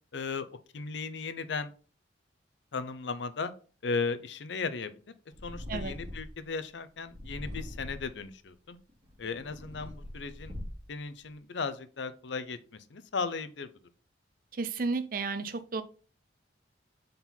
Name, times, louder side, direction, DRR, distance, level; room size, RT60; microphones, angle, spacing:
voice 1, 0.1-0.5 0.7-1.7 2.7-3.5 3.8-4.9 5.4-8.8 9.2-10.6 10.9-12.6 12.9-13.7, left 4 dB, 75° left, 0.6 m, -36 dB
Purr, 5.3-6.4 7.1-8.2 8.9-11.0, left 1 dB, 25° right, 2.3 m, -42 dB
voice 2, 14.5-15.8, right 4 dB, 50° right, 0.6 m, -32 dB
4.5 x 3.9 x 5.3 m
head